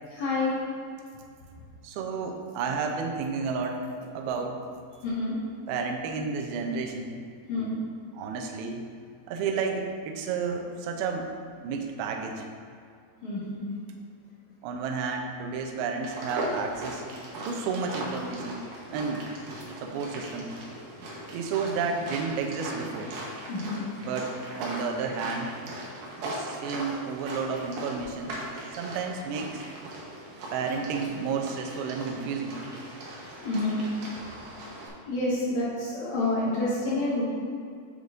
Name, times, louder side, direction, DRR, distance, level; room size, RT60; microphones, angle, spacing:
voice 1, 0.1-0.6 5.0-5.4 7.5-7.8 13.2-13.6 23.5-23.8 33.4-33.8 35.1-37.2, left 2 dB, 55° left, -8 dB, 2.4 m, -28 dB
voice 2, 1.8-4.6 5.7-7.1 7.5-7.8 8.1-8.8 9.3-11.3 11.6-12.5 14.6-17.1 17.5-19.3 19.8-20.6 21.3-23.2 24.0-25.5 26.2-28.4 28.7-29.6 30.5-32.7, right 5 dB, 90° right, 3 dB, 2.2 m, -31 dB
sound 1, 16.0-34.9, right 1 dB, 65° right, 2.1 m, -39 dB
9.5 x 6.5 x 2.6 m, 2.2 s
omnidirectional pair, 5.2 m